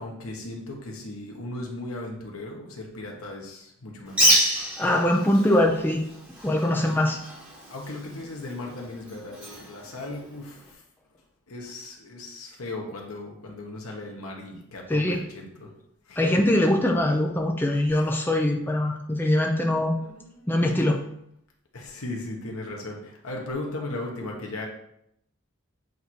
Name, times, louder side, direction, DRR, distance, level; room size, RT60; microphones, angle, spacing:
voice 1, 0.0-4.4 6.6-7.1 7.7-10.8 11.5-15.7 16.1-16.3 17.7-18.1 20.0-20.5 21.7-24.7, left 2 dB, 85° left, 0 dB, 1.3 m, -37 dB
Bird, 4.1-10.7, equal, 5° right, 1.2 m, -28 dB
voice 2, 4.8-6.0 6.4-7.2 14.9-15.2 16.2-20.0 20.5-21.0, left 1 dB, 10° left, 2 dB, 0.5 m, -22 dB
8.1 x 2.8 x 4.6 m, 0.76 s
head